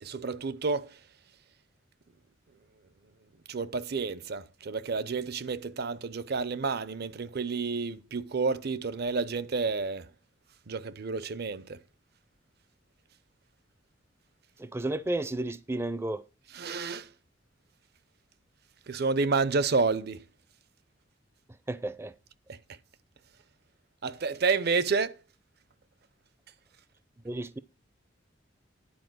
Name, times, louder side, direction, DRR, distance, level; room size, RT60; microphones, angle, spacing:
voice 1, 0.0-0.9 3.5-10.0 10.7-11.8 16.5-17.1 18.9-20.2 24.0-25.1, right 4 dB, 55° right, 0.6 m, -30 dB
voice 2, 14.6-16.2 21.7-22.1 27.2-27.6, right 2 dB, 15° right, 0.4 m, -32 dB
10.5 x 4.5 x 7.8 m
head